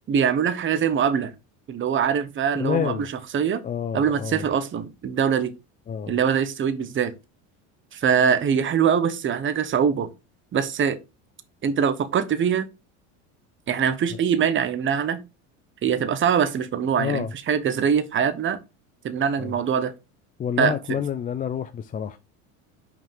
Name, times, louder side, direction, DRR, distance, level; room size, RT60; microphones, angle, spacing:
voice 1, 0.1-1.3 1.7-3.1 3.3-3.6 3.9-5.5 6.1-7.1 7.9-10.1 10.5-11.0 11.6-12.7 13.7-15.2 15.8-18.6 19.0-19.9 20.6-21.0, right 7 dB, 30° right, 0.9 m, -23 dB
voice 2, 2.5-3.1 3.6-4.4 5.9-6.2 17.0-17.3 19.4-19.5 20.4-22.2, left 8 dB, 25° left, 0.4 m, -28 dB
5.7 x 4.5 x 3.6 m
supercardioid pair, 110°, 38 cm